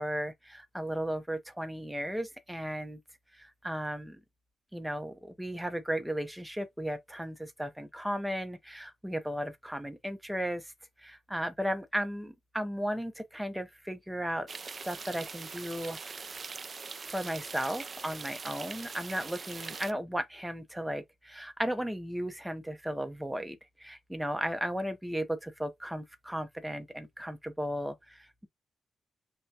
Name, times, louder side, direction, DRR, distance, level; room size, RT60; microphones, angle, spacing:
voice 1, 0.0-3.0 3.3-4.2 4.7-10.7 11.0-14.5 14.8-16.4 17.0-28.5, equal, 5° right, 0.6 m, -35 dB
sound 1, 14.5-19.9, right 5 dB, 40° right, 0.4 m, -42 dB
5.6 x 2.2 x 2.7 m
cardioid pair, 115°, 0 cm